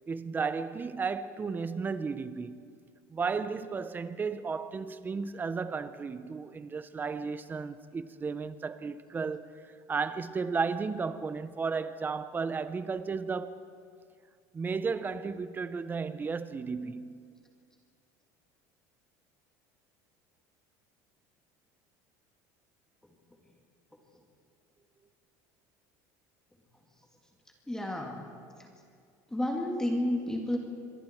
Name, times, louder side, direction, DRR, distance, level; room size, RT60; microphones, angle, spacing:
voice 1, 0.1-2.6 3.1-9.5 9.9-13.6 14.5-17.3, right 5 dB, 25° right, 1.0 m, -34 dB
voice 2, 27.7-28.2 29.3-30.6, left 1 dB, 5° left, 2.6 m, -30 dB
26.5 x 22.5 x 4.7 m
supercardioid pair, 115°, 8 cm